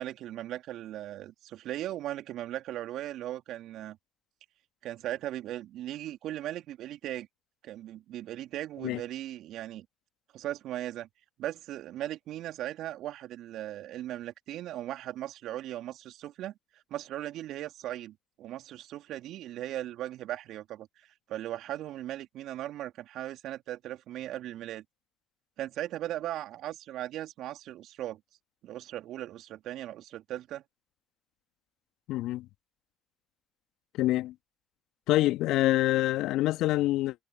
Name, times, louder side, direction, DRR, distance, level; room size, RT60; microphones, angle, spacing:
voice 1, 0.0-4.0 4.8-7.3 7.6-9.9 10.3-11.1 11.4-16.5 16.9-24.8 25.6-28.2 28.6-30.6, right 13 dB, 65° right, 2.9 m, -38 dB
voice 2, 32.1-32.5 33.9-34.3 35.1-37.2, left 16 dB, 70° left, 1.9 m, -26 dB
hypercardioid pair, 50°, 0 cm